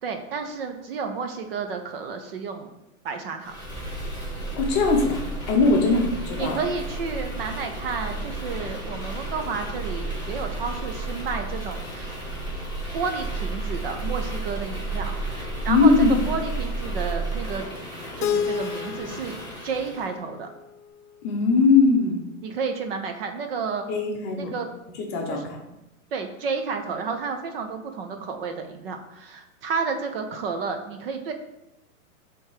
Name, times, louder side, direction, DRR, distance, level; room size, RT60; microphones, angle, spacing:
voice 1, 0.0-2.7 3.0-3.6 5.8-6.0 6.4-12.1 12.9-17.6 18.2-19.3 19.6-20.5 22.4-23.8 24.4-24.7 25.3-25.5 26.1-31.3, right 5 dB, 40° right, 6 dB, 0.6 m, -31 dB
sound 1, 3.4-20.1, right 2 dB, 10° right, 2.3 m, -32 dB
voice 2, 4.6-6.6 15.7-16.2 21.2-22.2 23.9-24.5 25.1-25.4, left 4 dB, 25° left, 1 dB, 0.8 m, -20 dB
Keyboard (musical), 18.2-21.1, left 8 dB, 85° left, 0.6 m, -31 dB
5.8 x 3.6 x 4.9 m, 0.90 s
hypercardioid pair, 155°, 44 cm